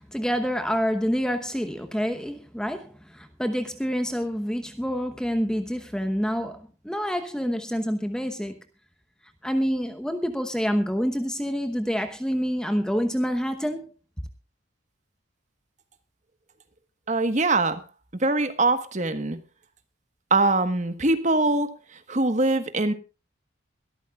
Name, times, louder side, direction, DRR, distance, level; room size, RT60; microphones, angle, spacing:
voice 1, 0.0-8.6 9.4-13.9, equal, 5° left, 0.9 m, -27 dB
voice 2, 17.1-17.8 18.2-19.4 20.3-21.7 22.1-22.9, right 2 dB, 35° right, 1.3 m, -22 dB
23.0 x 13.5 x 2.4 m
head